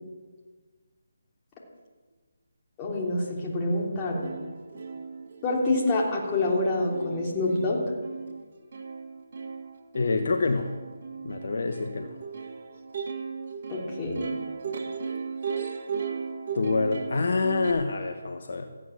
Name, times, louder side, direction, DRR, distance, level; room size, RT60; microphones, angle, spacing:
voice 1, 2.8-4.2 5.4-7.8 13.7-14.3, left 2 dB, 20° left, -2 dB, 3.4 m, -26 dB
Plucked string instrument, 3.8-3.9 4.2-17.7, right 5 dB, 45° right, 1.8 m, -37 dB
voice 2, 9.9-10.7 11.2-12.2 16.5-18.7, left 3 dB, 60° left, 5 dB, 1.2 m, -26 dB
15.0 x 9.1 x 7.3 m, 1.4 s
figure-of-eight pair, 150°, 0 cm